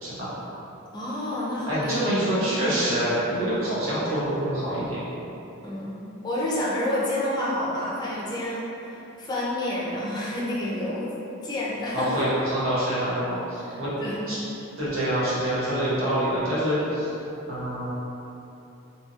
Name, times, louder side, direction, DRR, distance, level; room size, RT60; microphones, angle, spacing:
voice 1, 0.0-0.3 1.7-5.0 11.9-13.9 14.3-14.4 14.8-17.1 17.5-17.9, right 1 dB, 80° right, -10 dB, 1.0 m, -26 dB
voice 2, 0.9-2.0 5.6-8.7 9.2-11.1 11.4-12.3 13.6-13.7 14.0-14.4, left 1 dB, 20° left, -7 dB, 0.5 m, -29 dB
2.7 x 2.6 x 2.5 m, 3.0 s
head